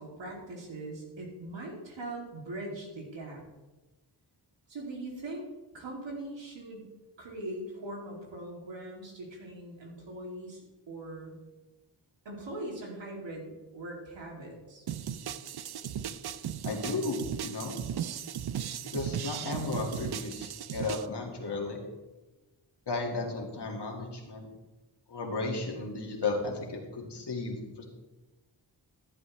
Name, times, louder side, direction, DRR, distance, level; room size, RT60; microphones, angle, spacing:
voice 1, 0.0-3.4 4.7-5.4 5.7-6.8 7.2-10.6 10.9-11.4 12.2-14.8, right 1 dB, 85° right, -2 dB, 2.7 m, -41 dB
sound 1, 14.9-21.1, right 9 dB, 60° right, 0.6 m, -37 dB
voice 2, 16.6-17.7 18.9-21.8 22.9-24.5 25.1-27.8, left 3 dB, 65° left, 0 dB, 2.1 m, -34 dB
14.0 x 8.1 x 3.2 m, 1.1 s
cardioid pair, 60°, 44 cm